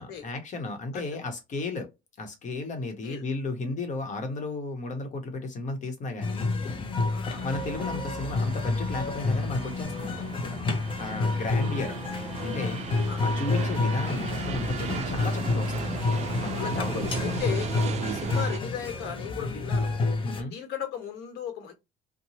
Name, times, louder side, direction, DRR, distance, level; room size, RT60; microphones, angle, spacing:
voice 1, 0.0-1.9 2.2-6.5 7.4-10.7 11.0-12.0 12.4-16.0 16.4-17.4 18.0-18.2 20.2-20.5, left 3 dB, 45° left, 1.0 m, -34 dB
sound 1, 6.2-20.4, left 3 dB, 30° left, 0.6 m, -29 dB
voice 2, 7.1-7.4 11.3-11.8 13.1-13.2 16.5-17.7 18.0-20.0 20.4-21.7, left 8 dB, 85° left, 1.1 m, -37 dB
sound 2, 7.3-18.6, right 8 dB, 40° right, 0.4 m, -37 dB
2.9 x 2.2 x 2.7 m
cardioid pair, 110°, 17 cm